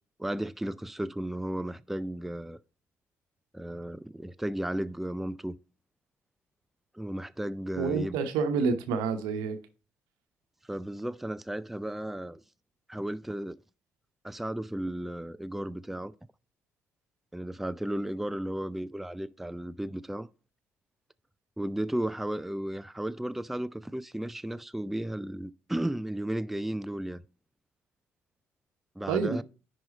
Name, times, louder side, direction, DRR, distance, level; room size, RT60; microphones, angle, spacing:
voice 1, 0.2-2.6 3.5-5.6 6.9-8.2 10.7-12.4 12.9-13.6 14.2-16.1 17.3-20.3 21.6-27.2 29.0-29.4, right 1 dB, 5° right, 0.4 m, -34 dB
voice 2, 7.8-9.6 29.1-29.4, right 5 dB, 70° right, 0.9 m, -28 dB
10.5 x 3.8 x 4.0 m
figure-of-eight pair, 45°, 7 cm